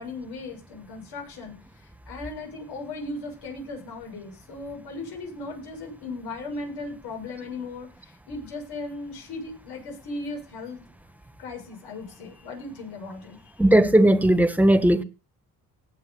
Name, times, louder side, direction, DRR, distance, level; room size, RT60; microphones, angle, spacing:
voice 1, 0.0-1.5 2.1-10.8 11.4-13.4, left 3 dB, 85° left, 6.9 m, -37 dB
voice 2, 13.6-15.0, right 1 dB, 5° right, 1.5 m, -17 dB
18.5 x 7.2 x 4.0 m
cardioid pair, 85°, 38 cm